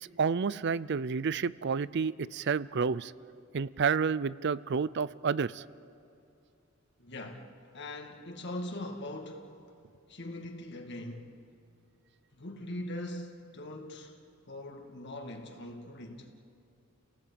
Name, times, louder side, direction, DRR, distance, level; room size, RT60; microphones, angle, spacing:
voice 1, 0.0-3.1 3.5-5.6, right 5 dB, 60° right, 0.5 m, -30 dB
voice 2, 7.0-7.5 7.7-9.5 10.1-11.3 12.3-14.2 14.5-16.3, left 1 dB, 60° left, 2.2 m, -41 dB
29.5 x 18.0 x 8.6 m
head